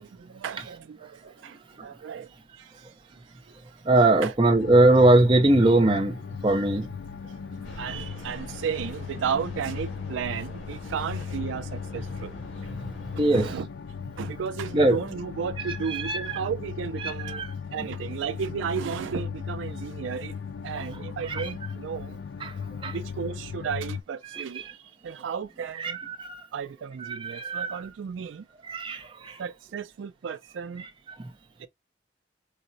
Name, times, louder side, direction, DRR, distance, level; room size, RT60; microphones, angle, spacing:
voice 1, 0.0-2.9 3.5-3.6 4.2-4.3 7.2-12.4 13.3-13.7 14.2-17.4 17.7-20.3 20.6-22.2 22.8-26.0 26.5-28.5 29.4-30.8 31.6-31.7, right 7 dB, 80° right, 0.3 m, -34 dB
voice 2, 3.8-6.9 12.8-12.9 13.2-13.5 14.7-15.0 15.6-16.4 17.0-17.5 20.7-20.8 21.3-21.5 22.4-22.5 22.8-22.9 24.3-24.4 25.8-26.4 27.0-27.8 28.6-29.4 30.8-30.9, right 2 dB, 25° right, 0.6 m, -22 dB
sound 1, 4.5-24.0, left 6 dB, 60° left, 0.3 m, -37 dB
sound 2, 7.6-13.6, equal, 90° left, 1.5 m, -45 dB
4.8 x 2.0 x 2.5 m
head